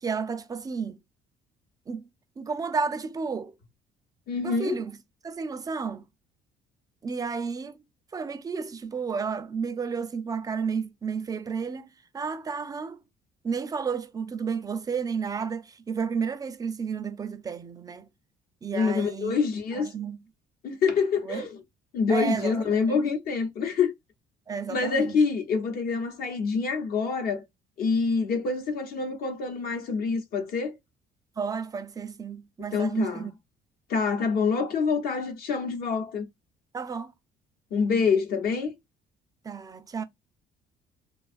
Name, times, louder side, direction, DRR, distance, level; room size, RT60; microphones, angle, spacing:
voice 1, 0.0-1.0 1.9-2.1 2.4-3.5 4.4-5.0 5.2-6.0 7.0-7.8 8.1-13.0 13.4-18.1 18.6-19.4 19.7-20.2 21.2-21.5 22.1-23.1 24.5-25.2 31.4-33.3 36.7-37.1 39.4-40.0, right 5 dB, 20° right, 0.4 m, -32 dB
voice 2, 4.3-4.8 18.7-19.9 20.6-21.6 21.9-23.9 24.7-27.4 27.8-30.8 32.7-33.3 33.9-36.3 37.7-38.7, left 5 dB, 60° left, 0.9 m, -26 dB
2.5 x 2.3 x 2.4 m
cardioid pair, 110°, 17 cm